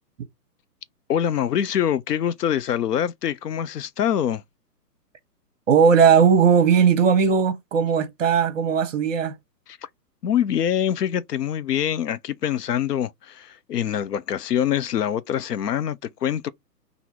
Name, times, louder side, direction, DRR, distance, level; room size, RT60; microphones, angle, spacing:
voice 1, 1.1-4.4 10.2-16.5, left 9 dB, 75° left, 0.7 m, -24 dB
voice 2, 5.7-9.4, right 6 dB, 50° right, 1.1 m, -18 dB
4.1 x 2.7 x 4.4 m
hypercardioid pair, 160°, 49 cm